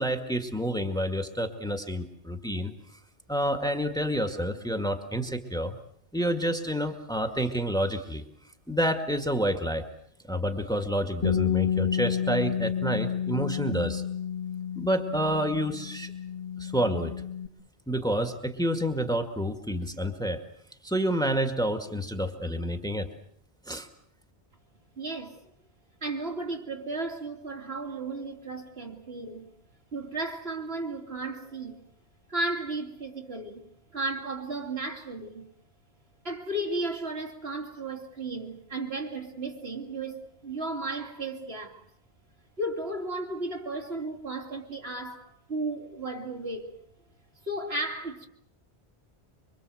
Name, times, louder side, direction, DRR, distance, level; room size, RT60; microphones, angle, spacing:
voice 1, 0.0-2.7 3.3-5.8 6.1-8.2 8.7-9.8 10.3-14.0 14.8-16.1 16.6-17.1 17.9-20.4 20.8-23.1 23.7-23.8, equal, 5° left, 2.0 m, -28 dB
Bass guitar, 11.2-17.5, left 8 dB, 50° left, 2.4 m, -30 dB
voice 2, 25.0-25.4 26.0-29.5 29.9-31.9 32.3-35.5 36.2-41.8 42.6-46.7 47.4-48.3, right 2 dB, 65° right, 3.5 m, -34 dB
25.0 x 25.0 x 7.9 m
omnidirectional pair, 1.1 m